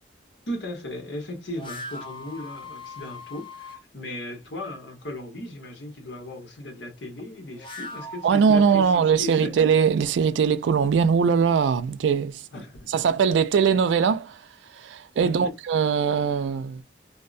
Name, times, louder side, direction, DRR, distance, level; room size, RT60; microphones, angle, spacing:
voice 1, 0.5-8.9 9.2-9.5 12.5-12.9 15.1-15.3, left 1 dB, 80° left, 1.0 m, -36 dB
sound 1, 1.5-3.8 7.4-9.1, left 2 dB, 30° left, 0.7 m, -40 dB
voice 2, 8.2-12.4 12.9-14.4 14.8-16.8, right 6 dB, 85° right, 0.3 m, -21 dB
2.6 x 2.1 x 2.4 m
head